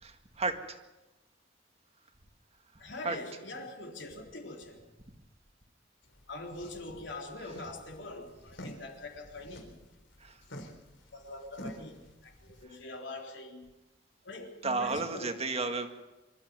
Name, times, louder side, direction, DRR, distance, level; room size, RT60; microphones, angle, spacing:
voice 1, 0.0-0.8 2.8-3.2 10.2-10.4 14.6-15.9, right 3 dB, 35° right, 6 dB, 1.9 m, -33 dB
voice 2, 2.8-4.9 6.3-9.8 11.1-13.7 14.2-15.5, left 2 dB, 70° left, 2 dB, 3.9 m, -43 dB
sound 1, 6.0-12.6, equal, 90° left, 3.8 m, -49 dB
25.5 x 13.5 x 9.6 m, 1.1 s
head